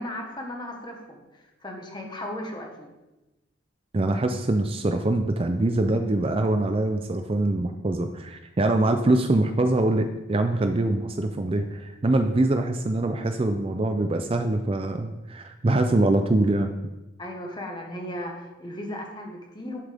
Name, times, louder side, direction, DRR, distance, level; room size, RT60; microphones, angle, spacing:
voice 1, 0.0-2.9 17.2-19.8, left 1 dB, 20° left, 1 dB, 1.4 m, -36 dB
voice 2, 3.9-16.7, right 2 dB, 30° right, 6 dB, 0.4 m, -24 dB
11.0 x 7.5 x 3.5 m, 1.0 s
head